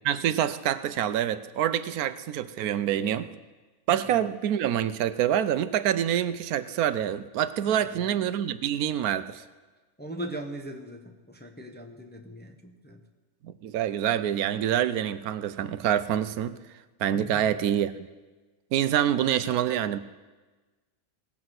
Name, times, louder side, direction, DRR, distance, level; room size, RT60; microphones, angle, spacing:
voice 1, 0.0-3.3 3.9-9.4 13.4-16.5 17.0-18.1 18.7-20.0, right 10 dB, 80° right, 13 dB, 1.1 m, -26 dB
voice 2, 7.7-8.2 10.0-13.0, right 1 dB, 10° left, 3 dB, 0.7 m, -40 dB
18.0 x 6.2 x 7.8 m, 1.2 s
omnidirectional pair, 1.6 m